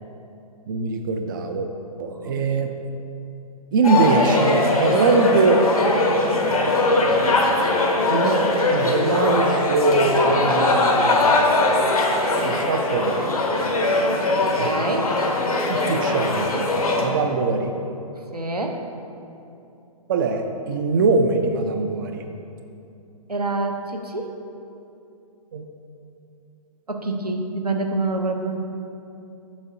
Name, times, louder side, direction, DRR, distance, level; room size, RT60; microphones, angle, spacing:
voice 1, 0.7-1.7 2.0-2.7 3.7-5.7 6.4-7.3 8.1-8.4 8.7-11.4 12.4-13.3 14.4-14.7 15.7-17.7 20.1-22.3 25.5-25.7, right 3 dB, 35° right, 5 dB, 0.3 m, -22 dB
sound 1, 3.8-17.0, left 2 dB, 70° left, 1.0 m, -20 dB
voice 2, 14.3-15.1 18.3-18.8 23.3-24.3 26.9-28.6, right 2 dB, 90° right, 3 dB, 0.7 m, -27 dB
7.0 x 6.5 x 2.6 m, 2.7 s
figure-of-eight pair, 125°, 19 cm